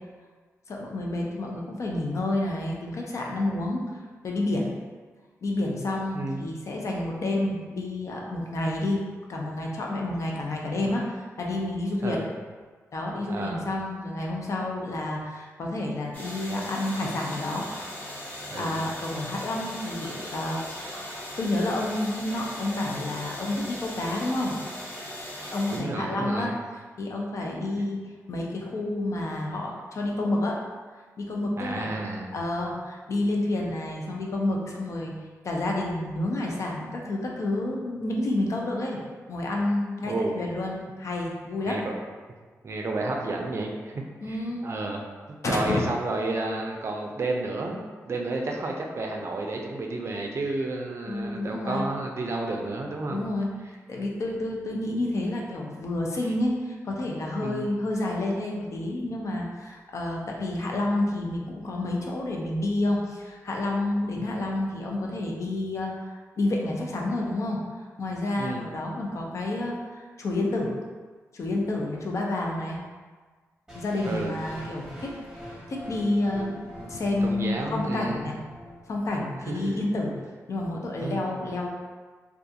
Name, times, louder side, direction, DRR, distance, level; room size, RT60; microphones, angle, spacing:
voice 1, 0.7-3.8 4.2-4.7 5.4-9.0 9.3-12.2 12.9-17.7 18.5-20.9 21.4-24.6 25.5-26.5 27.0-28.0 28.3-30.6 31.2-31.9 32.3-35.1 35.4-39.0 39.3-41.8 44.2-44.6 45.5-45.9 51.1-51.9 53.1-67.6 68.0-70.7 71.3-72.8 73.7-75.2 75.7-76.6 76.9-78.4 78.9-80.1 80.5-81.7, left 2 dB, 60° left, -1 dB, 0.5 m, -29 dB
voice 2, 6.1-6.5 12.0-12.3 13.3-13.6 18.5-18.8 25.7-26.6 27.8-27.9 31.6-32.4 40.0-40.4 41.7-41.9 42.6-45.0 45.3-47.8 48.0-53.3 57.4-57.7 68.4-68.6 74.0-74.4 77.2-78.3 79.4-79.8 81.0-81.2, right 2 dB, 50° right, 1 dB, 0.4 m, -31 dB
sound 1, 16.1-25.8, equal, 30° left, 1.1 m, -39 dB
sound 2, 73.7-79.7, equal, 5° right, 0.9 m, -43 dB
2.3 x 2.3 x 2.7 m, 1.4 s
cardioid pair, 65°, 6 cm